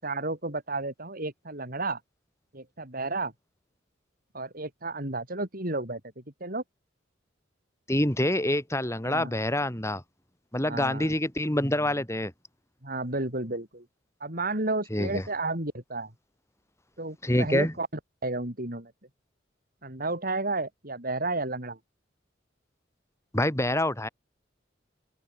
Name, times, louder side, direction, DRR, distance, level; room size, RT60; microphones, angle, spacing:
voice 1, 0.0-2.0 2.5-3.3 4.3-6.6 9.0-9.3 10.6-11.2 12.8-13.9 14.2-16.1 17.0-17.9 18.2-18.9 19.8-21.8, right 2 dB, 50° right, 7.3 m, -32 dB
voice 2, 7.9-10.0 10.5-12.3 14.9-15.2 17.2-17.7 23.3-24.1, left 1 dB, 15° left, 5.6 m, -26 dB
open air
head